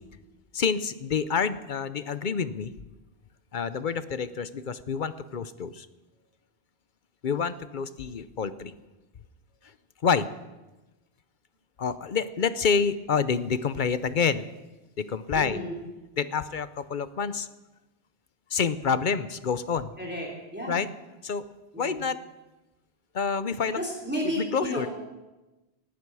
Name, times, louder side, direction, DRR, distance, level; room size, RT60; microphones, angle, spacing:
voice 1, 0.5-2.7 3.5-5.9 7.2-8.7 10.0-10.3 11.8-14.5 15.0-15.6 16.2-17.5 18.5-19.9 20.7-20.9 21.2-21.5 21.8-22.2 23.1-23.8 24.2-24.9, left 6 dB, 50° left, 13 dB, 0.8 m, -28 dB
voice 2, 15.3-15.8 20.0-20.8 21.7-22.0 23.7-24.9, equal, 10° right, -2 dB, 3.3 m, -32 dB
19.0 x 14.5 x 4.8 m, 1.1 s
omnidirectional pair, 1.2 m